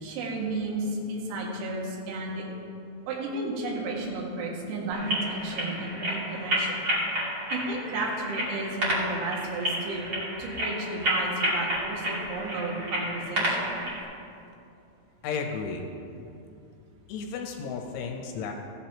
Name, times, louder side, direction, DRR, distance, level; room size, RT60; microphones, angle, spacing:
voice 1, 0.0-2.4 3.1-6.8 7.5-10.0 10.4-13.8, right 2 dB, 65° right, -3 dB, 3.5 m, -33 dB
sound 1, 4.9-14.0, equal, 40° right, 1.7 m, -30 dB
voice 2, 15.2-15.8 17.1-18.5, left 5 dB, 80° left, 3 dB, 3.2 m, -33 dB
15.0 x 11.0 x 2.9 m, 2.6 s
omnidirectional pair, 5.6 m